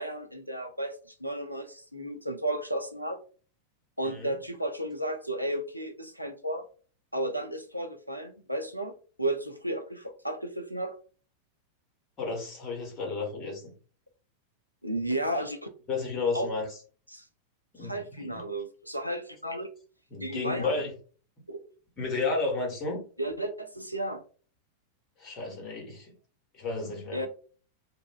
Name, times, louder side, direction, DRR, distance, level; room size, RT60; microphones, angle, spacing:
voice 1, 0.0-3.2 4.0-6.7 7.1-8.9 9.2-11.0 14.8-15.7 16.3-16.5 17.1-17.3 17.8-19.7 20.2-20.8 21.5-21.6 23.2-24.2 27.1-27.3, right 1 dB, 90° right, 5 dB, 0.4 m, -33 dB
voice 2, 12.2-13.7 15.9-16.7 17.7-18.4 20.1-20.9 22.0-23.0 25.2-26.1 26.5-27.2, left 3 dB, 30° left, -1 dB, 1.1 m, -32 dB
2.5 x 2.5 x 2.3 m, 0.40 s
figure-of-eight pair, 90°, 0 cm